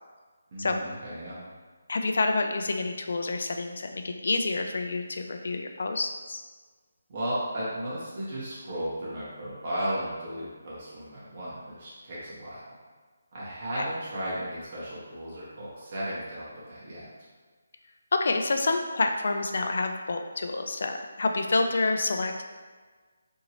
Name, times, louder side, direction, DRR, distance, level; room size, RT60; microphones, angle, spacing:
voice 1, 0.5-1.4 7.1-12.7 13.3-17.1, right 1 dB, 30° right, -8 dB, 0.9 m, -35 dB
voice 2, 1.9-6.4 18.1-22.4, left 3 dB, 55° left, 5 dB, 0.3 m, -28 dB
2.9 x 2.6 x 2.8 m, 1.4 s
hypercardioid pair, 175°, 0 cm